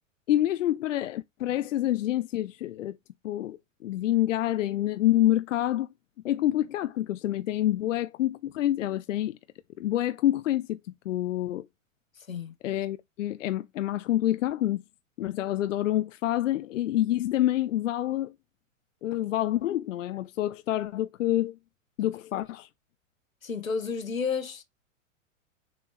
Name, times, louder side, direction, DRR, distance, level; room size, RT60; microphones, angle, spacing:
voice 1, 0.3-3.0 3.2-5.9 6.2-9.4 9.8-11.7 12.6-14.8 15.2-18.3 19.0-21.6 22.0-22.7, left 13 dB, 70° left, 0.5 m, -27 dB
voice 2, 23.4-24.6, left 5 dB, 90° left, 1.3 m, -31 dB
7.0 x 4.5 x 3.0 m
hypercardioid pair, 105°, 39 cm